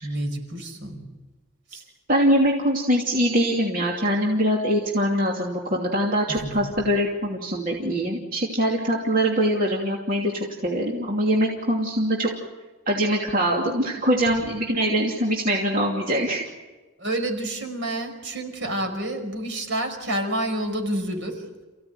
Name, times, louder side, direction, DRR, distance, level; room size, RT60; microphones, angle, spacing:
voice 1, 0.0-1.1 1.7-1.8 6.3-6.5 17.0-21.4, right 1 dB, 60° right, 5 dB, 5.3 m, -29 dB
voice 2, 2.1-12.3 12.9-16.4, equal, 40° right, -2 dB, 2.9 m, -23 dB
29.0 x 16.5 x 9.4 m, 1.2 s
head